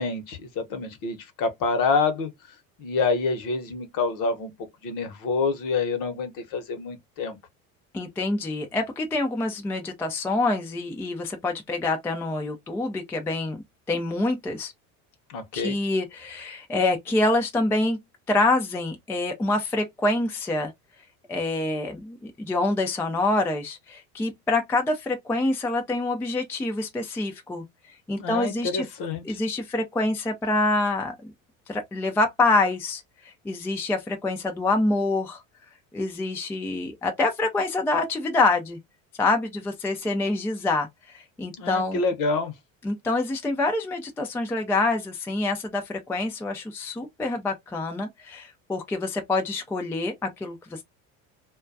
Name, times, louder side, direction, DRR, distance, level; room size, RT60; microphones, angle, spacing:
voice 1, 0.0-2.3 2.8-4.5 4.8-7.4 15.3-15.8 28.2-29.4 41.6-42.5, left 4 dB, 50° left, 0.9 m, -27 dB
voice 2, 7.9-13.6 13.9-14.7 15.5-18.0 18.3-20.7 21.3-27.6 28.1-28.9 29.2-31.3 31.7-35.4 35.9-38.8 39.2-42.1 42.8-50.8, left 2 dB, 5° left, 0.3 m, -26 dB
2.2 x 2.2 x 2.5 m
hypercardioid pair, 85°, 41 cm